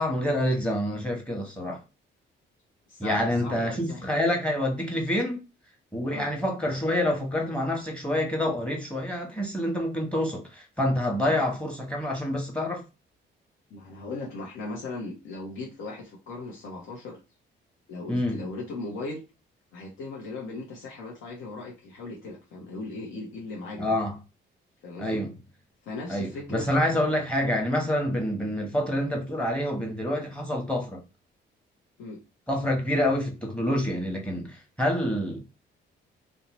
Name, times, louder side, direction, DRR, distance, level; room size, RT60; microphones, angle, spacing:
voice 1, 0.0-1.8 3.0-5.4 5.9-12.8 18.1-18.4 23.8-24.1 25.0-25.3 26.1-31.0 32.5-35.4, left 1 dB, 5° left, 1.0 m, -27 dB
voice 2, 2.9-4.0 6.1-6.3 13.7-17.2 17.9-19.2 19.7-24.0 24.8-25.3 25.8-26.7 32.0-32.2, left 2 dB, 80° left, 0.7 m, -38 dB
2.6 x 2.1 x 3.0 m
cardioid pair, 90°, 20 cm